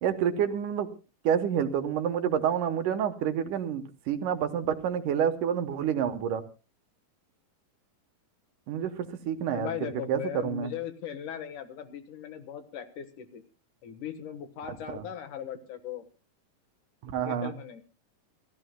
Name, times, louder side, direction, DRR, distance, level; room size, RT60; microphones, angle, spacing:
voice 1, 0.0-0.9 1.2-6.4 8.7-10.7 14.9-15.0 17.0-17.5, right 8 dB, 75° right, 8 dB, 2.6 m, -28 dB
voice 2, 9.5-13.4 13.8-16.1 17.1-17.8, left 9 dB, 70° left, 9 dB, 2.7 m, -38 dB
29.0 x 13.5 x 2.2 m, 0.33 s
omnidirectional pair, 3.9 m